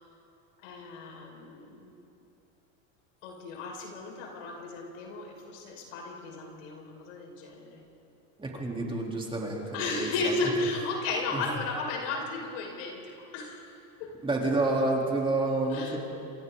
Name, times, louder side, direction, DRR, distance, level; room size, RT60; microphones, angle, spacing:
voice 1, 0.6-1.9 3.2-7.8 9.7-13.6 14.0-14.2 15.7-16.0, left 3 dB, 75° left, 1 dB, 5.6 m, -34 dB
voice 2, 8.4-10.3 11.3-11.4 14.2-16.0, right 2 dB, 15° right, -2 dB, 3.9 m, -29 dB
28.0 x 26.5 x 4.1 m, 2.8 s
supercardioid pair, 110°, 38 cm